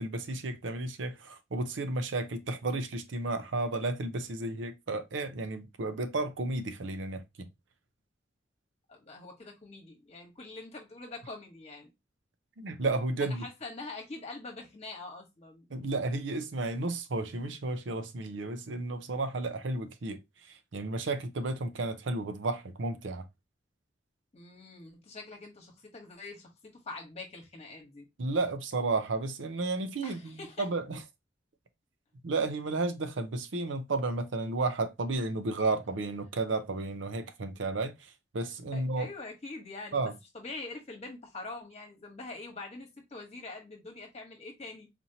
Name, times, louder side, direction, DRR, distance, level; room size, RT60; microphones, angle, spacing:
voice 1, 0.0-7.5 12.6-13.4 15.7-23.3 28.2-31.0 32.2-39.1 39.9-40.1, right 2 dB, 75° right, 0.6 m, -33 dB
voice 2, 8.9-11.9 13.2-15.7 24.3-28.0 30.0-30.7 38.7-44.9, left 3 dB, 35° left, 1.2 m, -44 dB
4.2 x 2.8 x 2.7 m
head